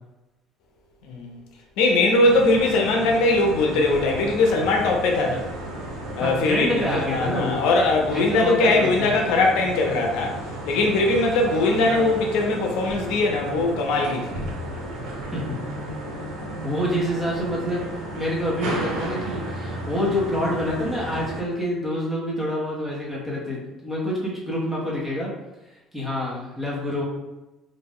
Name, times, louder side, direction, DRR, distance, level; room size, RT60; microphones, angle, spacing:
voice 1, 1.0-1.4 1.8-5.5 6.2-10.3 10.7-14.4, left 2 dB, 80° left, 1 dB, 0.5 m, -21 dB
sound 1, 2.2-21.4, right 1 dB, 80° right, 0.6 m, -33 dB
voice 2, 6.2-7.6 8.1-9.1 15.3-15.6 16.6-25.3 25.9-27.0, equal, 5° right, -6 dB, 0.8 m, -27 dB
2.5 x 2.1 x 3.5 m, 1.0 s
cardioid pair, 155°, 0 cm